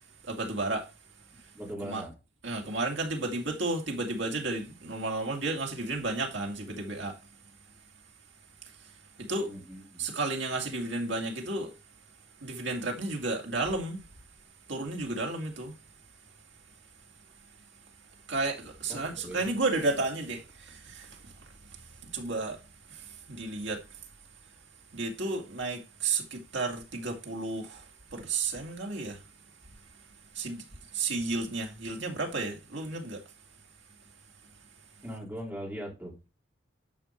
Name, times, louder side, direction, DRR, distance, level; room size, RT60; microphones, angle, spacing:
voice 1, 0.2-0.9 1.4-1.5 1.8-2.0 2.4-7.3 8.6-9.6 10.0-11.7 12.4-14.1 14.7-15.8 18.3-24.0 24.9-29.3 30.3-33.2, right 3 dB, 70° right, 2.3 m, -33 dB
voice 2, 1.5-2.1 9.5-10.0 18.9-19.5 35.0-36.1, equal, 10° right, 3.9 m, -40 dB
11.0 x 5.5 x 4.5 m
head